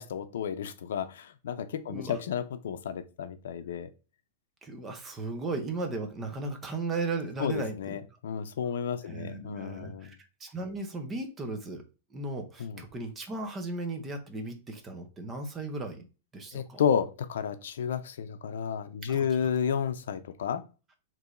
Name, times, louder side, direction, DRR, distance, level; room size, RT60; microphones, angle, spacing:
voice 1, 0.0-3.9 7.4-10.1 12.6-12.8 16.5-20.6, left 7 dB, 80° left, 0.5 m, -32 dB
voice 2, 1.9-2.2 4.6-8.0 9.0-11.8 12.1-16.1 16.3-16.8 19.1-19.5, right 2 dB, 15° right, 0.5 m, -36 dB
4.7 x 3.0 x 2.5 m
supercardioid pair, 175°, 0 cm